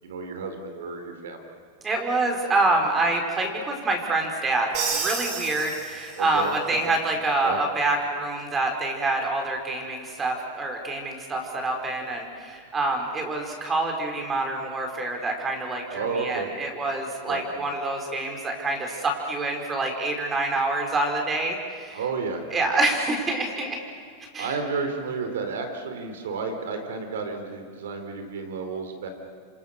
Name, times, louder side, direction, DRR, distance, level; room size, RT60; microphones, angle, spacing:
voice 1, 0.0-1.6 6.2-6.8 7.4-7.6 15.9-16.5 17.3-17.4 21.9-22.7 24.4-29.1, right 4 dB, 85° right, 6 dB, 4.3 m, -31 dB
voice 2, 1.8-22.0 22.5-23.8 24.3-24.5, right 2 dB, 20° right, 3 dB, 4.8 m, -26 dB
Crash cymbal, 4.7-6.5, right 5 dB, 55° right, 6.8 m, -30 dB
27.0 x 26.5 x 6.8 m, 2.2 s
supercardioid pair, 130°, 0 cm